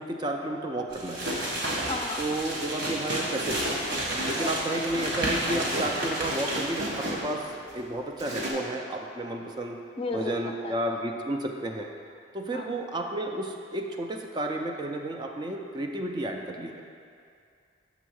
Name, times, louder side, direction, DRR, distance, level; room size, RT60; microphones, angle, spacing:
voice 1, 0.0-1.3 2.2-3.8 4.2-7.4 7.7-9.8 10.1-11.9 12.3-16.7, right 1 dB, 25° right, 2 dB, 0.4 m, -32 dB
sound 1, 0.9-6.9, right 1 dB, 70° right, 1.5 m, -32 dB
sound 2, 1.2-7.8 8.2-8.5, right 1 dB, 85° right, 1.2 m, -34 dB
voice 2, 1.9-2.2 4.4-4.5 10.0-10.3 10.6-10.7 12.5-12.7, left 3 dB, 30° left, 3 dB, 0.5 m, -33 dB
7.0 x 3.6 x 6.2 m, 2.4 s
head